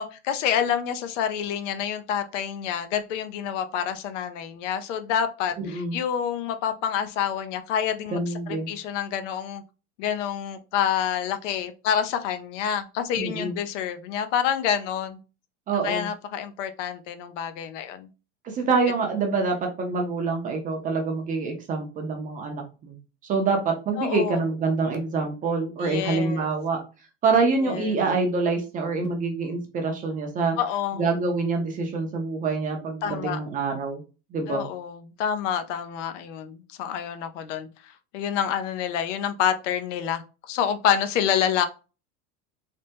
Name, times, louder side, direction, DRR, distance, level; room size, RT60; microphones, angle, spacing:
voice 1, 0.0-9.6 10.0-15.2 15.8-18.1 24.0-24.4 25.8-26.5 27.6-28.0 30.6-31.1 33.0-33.4 34.5-37.7 38.1-41.7, left 9 dB, 75° left, 0.6 m, -28 dB
voice 2, 5.6-6.0 8.1-8.7 13.2-13.5 15.7-16.1 18.4-22.9 23.3-26.8 27.2-30.5 30.9-34.0 34.3-34.6, right 4 dB, 20° right, 0.5 m, -26 dB
3.3 x 2.1 x 2.8 m
supercardioid pair, 145°, 37 cm